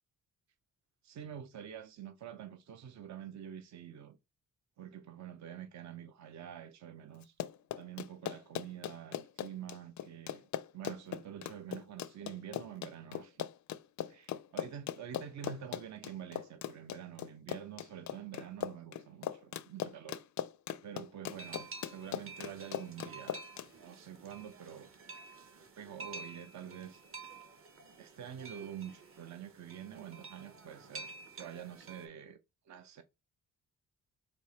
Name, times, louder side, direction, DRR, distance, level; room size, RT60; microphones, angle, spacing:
voice 1, 1.0-4.2 4.8-7.3 7.8-13.5 14.0-20.2 20.8-23.4 23.8-24.9 25.8-27.0 28.0-32.4 32.7-33.0, right 9 dB, 55° right, 0.6 m, -47 dB
Run, 7.2-23.7, left 11 dB, 60° left, 0.4 m, -40 dB
sound 1, 21.3-32.1, right 3 dB, 40° right, 1.0 m, -50 dB
4.4 x 2.8 x 3.1 m
cardioid pair, 80°, 33 cm